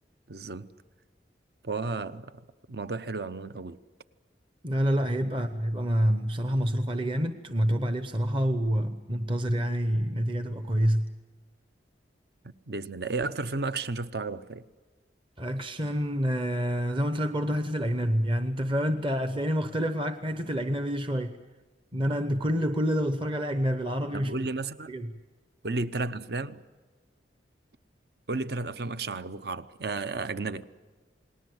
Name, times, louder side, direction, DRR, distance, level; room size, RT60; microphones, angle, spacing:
voice 1, 0.3-0.7 1.6-2.3 2.7-3.8 12.7-14.6 24.1-24.9 25.6-26.6 28.3-30.6, right 3 dB, 60° right, 0.8 m, -33 dB
voice 2, 4.6-11.1 15.4-21.4 21.9-24.5 24.9-25.1, equal, 30° right, 0.9 m, -27 dB
28.5 x 19.5 x 7.8 m
head